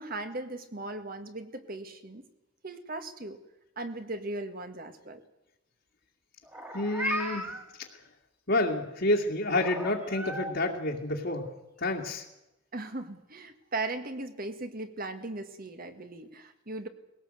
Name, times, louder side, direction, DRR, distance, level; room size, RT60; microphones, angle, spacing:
voice 1, 0.0-2.2 2.6-3.4 3.8-5.2 12.7-16.9, right 2 dB, 45° right, 8 dB, 1.9 m, -38 dB
Meow, 6.5-7.6 9.5-10.5, equal, 10° right, 2.2 m, -35 dB
voice 2, 6.7-7.5 7.8-7.9 8.5-11.5 11.8-12.2, left 2 dB, 55° left, -3 dB, 2.3 m, -29 dB
21.0 x 18.0 x 7.8 m, 0.94 s
head